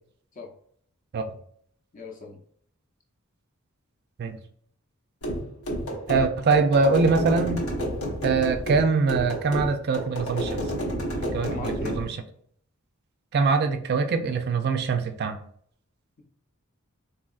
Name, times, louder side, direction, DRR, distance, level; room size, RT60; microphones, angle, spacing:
voice 1, 1.9-2.4 11.4-12.0, left 2 dB, 35° left, 1 dB, 0.7 m, -37 dB
sound 1, 5.2-12.1, equal, 85° left, 1.0 m, -30 dB
voice 2, 6.1-7.6 8.2-10.6 11.3-12.2 13.3-15.4, right 4 dB, 50° right, 7 dB, 0.3 m, -23 dB
4.0 x 2.7 x 2.4 m, 0.62 s
head